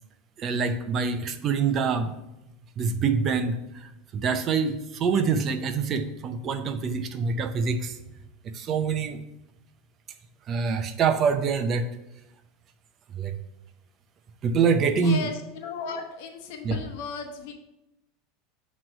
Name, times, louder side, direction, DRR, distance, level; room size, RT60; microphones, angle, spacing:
voice 1, 0.4-2.1 2.8-8.0 8.5-9.2 10.5-11.9 13.1-13.4 14.4-15.3 16.6-16.7, right 5 dB, 40° right, 9 dB, 0.6 m, -25 dB
voice 2, 15.0-17.5, left 5 dB, 70° left, 3 dB, 0.9 m, -35 dB
7.5 x 3.1 x 5.3 m, 0.92 s
supercardioid pair, 120°, 0 cm